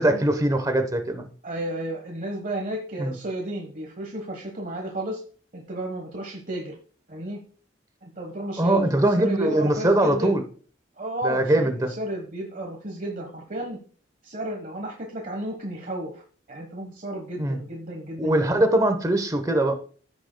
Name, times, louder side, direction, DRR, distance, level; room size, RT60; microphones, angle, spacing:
voice 1, 0.0-1.3 3.0-3.1 8.6-10.4 11.2-11.9 17.4-17.6 18.2-19.8, right 1 dB, 20° right, 7 dB, 0.9 m, -22 dB
voice 2, 1.4-5.2 5.5-6.7 7.1-7.4 8.0-10.4 11.0-13.8 14.2-16.2 16.5-18.6, right 1 dB, 45° right, 1 dB, 1.2 m, -32 dB
15.0 x 6.4 x 2.2 m, 0.43 s
head